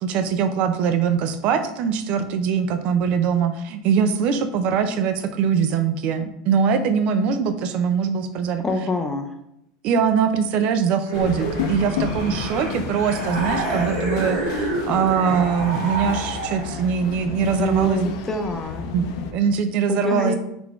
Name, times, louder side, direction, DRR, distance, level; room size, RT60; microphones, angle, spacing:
voice 1, 0.0-8.6 9.8-18.1 18.9-20.4, right 6 dB, 50° right, 9 dB, 0.5 m, -22 dB
voice 2, 8.6-9.3 17.6-18.9 19.9-20.4, equal, 15° left, 5 dB, 0.5 m, -24 dB
sound 1, 11.1-19.3, left 6 dB, 70° left, 0.5 m, -31 dB
sound 2, 11.1-16.9, right 2 dB, 85° right, 1.2 m, -29 dB
3.9 x 3.3 x 3.5 m, 0.79 s
supercardioid pair, 130°, 3 cm